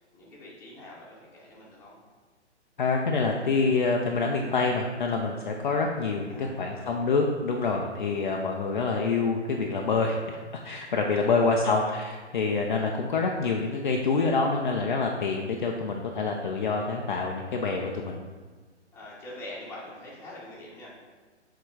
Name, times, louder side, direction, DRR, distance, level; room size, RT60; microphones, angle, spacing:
voice 1, 0.0-2.0 6.3-6.9 11.2-11.9 18.9-21.0, left 1 dB, 5° left, -7 dB, 1.3 m, -44 dB
voice 2, 2.8-10.4 10.6-18.2, left 4 dB, 45° left, 1 dB, 0.6 m, -26 dB
6.9 x 3.8 x 4.7 m, 1.4 s
figure-of-eight pair, 125°, 35 cm